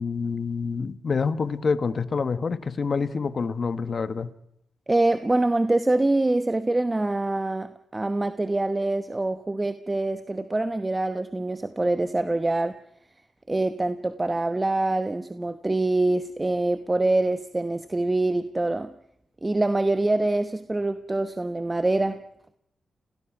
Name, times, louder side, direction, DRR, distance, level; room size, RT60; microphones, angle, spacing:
voice 1, 0.0-4.3, left 5 dB, 50° left, 13 dB, 1.3 m, -27 dB
voice 2, 4.9-12.7 13.5-18.9 19.4-22.2, right 2 dB, 25° right, 11 dB, 1.0 m, -25 dB
29.5 x 18.0 x 6.0 m, 0.75 s
supercardioid pair, 55°, 0 cm